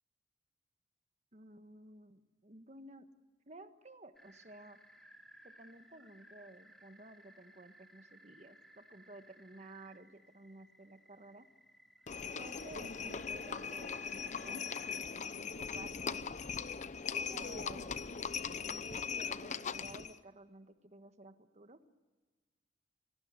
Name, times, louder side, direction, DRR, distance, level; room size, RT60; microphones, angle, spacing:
voice 1, 1.3-3.1 3.5-4.8 5.4-11.5 12.4-14.6 15.4-16.2 17.1-18.0 18.6-21.8, right 2 dB, 40° right, 9 dB, 1.5 m, -54 dB
sound 1, 4.1-15.0, right 1 dB, ahead, 2.7 m, -61 dB
Livestock farm animals working animals, 12.1-20.2, left 6 dB, 40° left, 0.7 m, -40 dB
25.5 x 19.0 x 9.6 m, 1.3 s
head